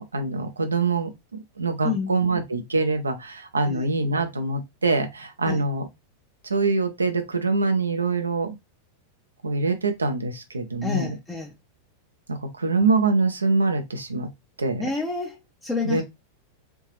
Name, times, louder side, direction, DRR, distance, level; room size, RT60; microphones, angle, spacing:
voice 1, 0.0-5.9 6.5-8.6 9.4-11.1 12.3-14.3 14.6-14.8 15.8-16.0, right 3 dB, 75° right, 0.7 m, -24 dB
voice 2, 1.8-2.2 3.7-3.9 5.4-5.6 10.8-11.5 14.8-16.0, left 4 dB, 10° left, 0.7 m, -29 dB
3.5 x 2.7 x 3.1 m
figure-of-eight pair, 90°, 0 cm